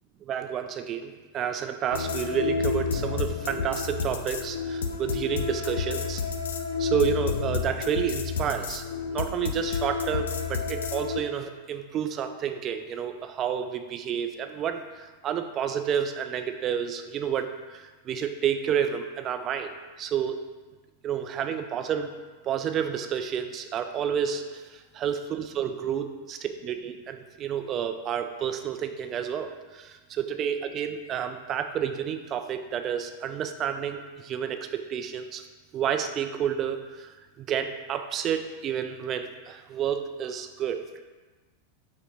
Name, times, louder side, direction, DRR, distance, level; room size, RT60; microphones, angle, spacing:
voice 1, 0.3-6.2 6.8-14.8 15.2-19.7 20.0-20.4 21.0-22.1 22.4-24.4 24.9-35.4 35.7-37.1 37.4-40.8, right 8 dB, 30° right, 7 dB, 0.3 m, -30 dB
sound 1, 1.9-11.2, left 5 dB, 65° left, 0.4 m, -30 dB
5.4 x 2.1 x 4.2 m, 1.3 s
figure-of-eight pair, 90°, 0 cm